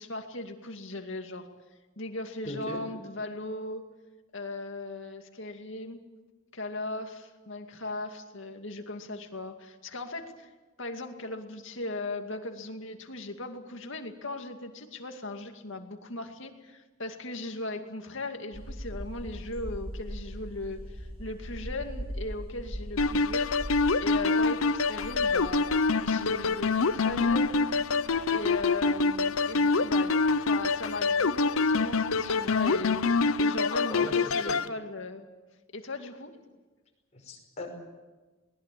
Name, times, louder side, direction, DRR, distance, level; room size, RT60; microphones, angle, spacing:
voice 1, 0.0-1.5 2.0-3.8 4.3-6.0 6.5-10.5 10.8-23.5 24.0-25.6 26.0-27.6 28.3-35.2 35.7-36.3, left 2 dB, 60° left, 5 dB, 2.4 m, -38 dB
voice 2, 2.5-2.8 33.7-34.6 37.1-37.7, left 1 dB, 30° left, 1 dB, 5.6 m, -38 dB
sound 1, 18.5-33.3, equal, 25° right, 5.9 m, -42 dB
sound 2, 23.0-34.7, left 4 dB, 75° left, 0.7 m, -26 dB
22.0 x 20.0 x 8.5 m, 1.2 s
head